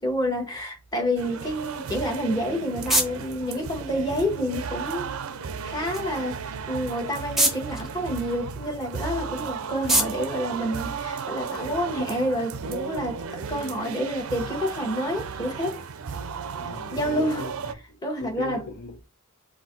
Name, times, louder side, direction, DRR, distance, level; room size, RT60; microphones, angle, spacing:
voice 1, 0.0-5.1 5.6-15.8 16.9-17.5 18.0-18.6, equal, 20° left, 1.2 m, -28 dB
sound 1, 1.2-17.7, right 6 dB, 70° right, 0.4 m, -34 dB
sound 2, 2.1-11.5, right 1 dB, ahead, 0.7 m, -31 dB
voice 2, 16.5-17.5 17.9-19.0, left 3 dB, 50° left, 0.6 m, -39 dB
4.3 x 2.2 x 3.9 m
head